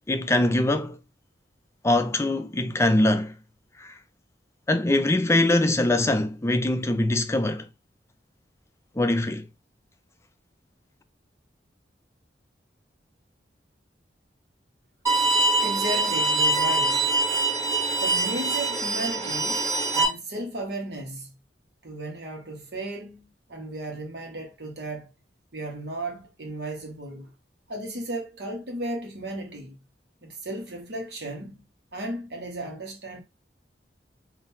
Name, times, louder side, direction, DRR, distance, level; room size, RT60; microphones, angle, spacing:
voice 1, 0.1-1.0 1.8-3.3 4.7-7.7 9.0-9.5, left 1 dB, 15° left, 0.4 m, -22 dB
Bowed string instrument, 15.1-20.1, right 2 dB, 20° right, 1.5 m, -24 dB
voice 2, 15.6-17.0 18.0-19.6 19.9-21.3 21.8-25.1 25.5-27.3 27.7-29.8 30.2-31.6 31.9-33.2, right 1 dB, 65° right, 1.3 m, -35 dB
3.7 x 2.7 x 2.7 m
head